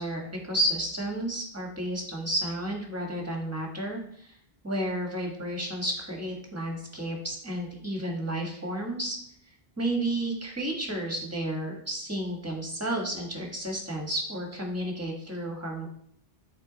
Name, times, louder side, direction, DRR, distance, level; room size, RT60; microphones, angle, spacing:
voice 1, 0.0-4.4 4.6-9.2 9.8-15.9, right 1 dB, 15° right, 0 dB, 1.5 m, -32 dB
8.0 x 4.0 x 4.0 m, 0.65 s
omnidirectional pair, 1.0 m